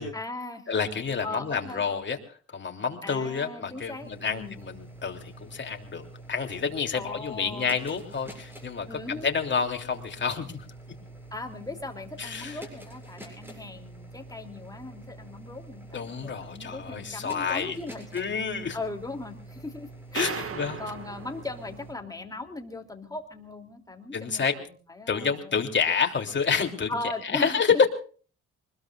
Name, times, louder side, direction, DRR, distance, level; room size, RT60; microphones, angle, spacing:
voice 1, 0.1-0.7 1.2-1.8 3.0-4.6 6.9-7.7 8.9-9.3 11.3-18.1 18.7-20.5 20.8-25.6 26.9-27.9, left 2 dB, 10° left, 4 dB, 3.1 m, -38 dB
voice 2, 0.7-10.6 12.2-12.6 15.9-17.7 18.1-18.8 20.1-20.8 24.1-24.5 25.1-27.9, left 6 dB, 40° left, 4 dB, 3.2 m, -29 dB
sound 1, 3.4-21.9, right 2 dB, 5° right, 8.0 m, -46 dB
sound 2, 20.2-22.5, right 6 dB, 45° right, 2.0 m, -38 dB
25.5 x 20.5 x 2.6 m, 0.41 s
cardioid pair, 90°, 30 cm